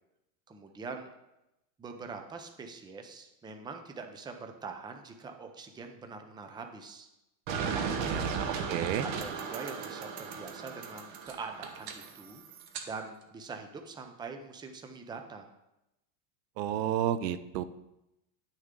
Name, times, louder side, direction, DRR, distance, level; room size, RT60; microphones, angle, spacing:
voice 1, 0.5-1.1 1.8-7.1 7.7-8.2 9.0-12.4 12.8-15.5, right 4 dB, 10° right, 5 dB, 0.6 m, -43 dB
sound 1, 7.5-12.9, right 6 dB, 50° right, 1.3 m, -36 dB
voice 2, 8.0-9.1 16.6-17.6, right 11 dB, 90° right, 13 dB, 0.8 m, -32 dB
10.0 x 6.5 x 3.8 m, 0.91 s
supercardioid pair, 135°, 49 cm